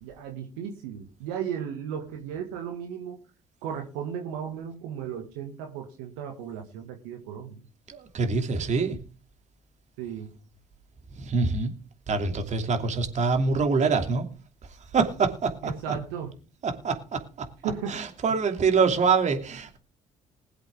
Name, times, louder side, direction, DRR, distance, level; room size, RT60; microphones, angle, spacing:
voice 1, 0.0-3.2 3.6-7.6 10.0-10.3 15.6-16.3 17.6-18.0, right 8 dB, 85° right, 1.9 m, -35 dB
voice 2, 7.9-9.0 11.2-11.7 12.1-14.3 14.9-15.9 16.6-17.5 17.9-19.8, right 4 dB, 50° right, 2.8 m, -25 dB
20.0 x 8.0 x 3.6 m
hypercardioid pair, 65°, 16 cm